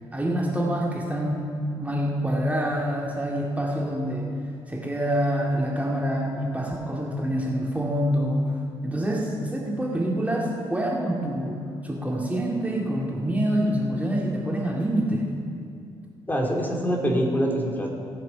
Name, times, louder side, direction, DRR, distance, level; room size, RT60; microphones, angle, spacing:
voice 1, 0.1-1.5 1.8-4.3 4.7-8.5 8.8-15.3, equal, 10° right, -3 dB, 2.1 m, -26 dB
voice 2, 16.3-17.9, equal, 15° left, -1 dB, 2.7 m, -24 dB
17.5 x 7.4 x 5.7 m, 2.4 s
hypercardioid pair, 50°, 12 cm